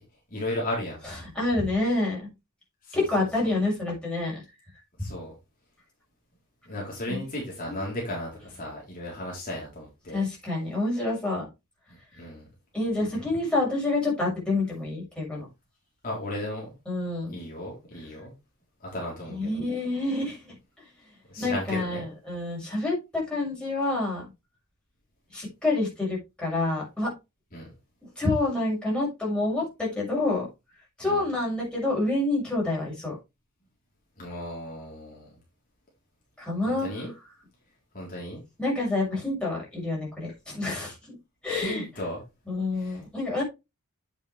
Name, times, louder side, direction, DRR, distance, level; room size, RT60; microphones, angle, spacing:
voice 1, 0.3-1.0 2.8-3.6 5.0-5.3 6.7-10.2 11.9-12.4 16.0-16.7 17.3-18.3 18.8-19.5 21.3-22.0 27.5-27.7 31.0-31.2 34.2-35.4 36.7-37.1 37.9-38.4 41.5-42.2 42.7-43.0, left 1 dB, 40° left, -3 dB, 3.9 m, -35 dB
voice 2, 1.0-2.3 2.9-4.4 7.1-7.2 7.6-7.9 10.1-11.5 12.7-15.5 16.9-17.4 19.3-20.5 21.4-24.2 25.3-27.1 28.0-30.5 31.0-33.2 36.4-36.9 38.6-41.1 41.4-41.8 42.5-43.4, left 2 dB, 5° left, -5 dB, 6.7 m, -28 dB
9.1 x 8.1 x 3.4 m, 0.25 s
head